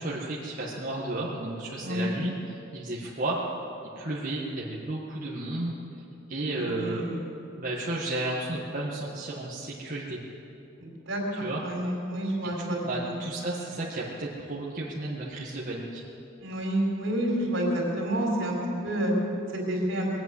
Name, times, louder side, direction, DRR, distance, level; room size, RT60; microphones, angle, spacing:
voice 1, 0.0-3.4 3.9-5.7 6.3-7.1 7.6-10.2 11.3-11.6 12.8-16.0, right 2 dB, 40° right, -5 dB, 1.6 m, -33 dB
voice 2, 6.5-7.2 10.8-12.8 13.0-13.2 16.4-18.6 18.8-19.1 19.5-20.1, right 1 dB, 70° right, -1 dB, 3.9 m, -29 dB
21.0 x 8.5 x 7.9 m, 2.8 s
head